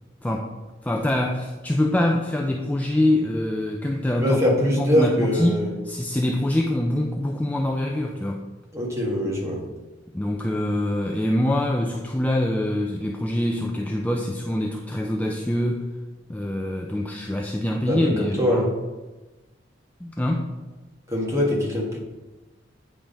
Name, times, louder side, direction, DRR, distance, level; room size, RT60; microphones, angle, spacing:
voice 1, 0.2-0.5 0.8-4.4 4.7-5.6 5.8-8.5 10.1-15.9 16.3-18.6 20.0-20.5, left 1 dB, 10° left, 1 dB, 0.4 m, -24 dB
voice 2, 4.2-5.7 8.7-9.6 17.9-18.7 21.1-22.0, equal, 15° right, -3 dB, 1.6 m, -23 dB
8.7 x 3.5 x 5.1 m, 1.2 s
head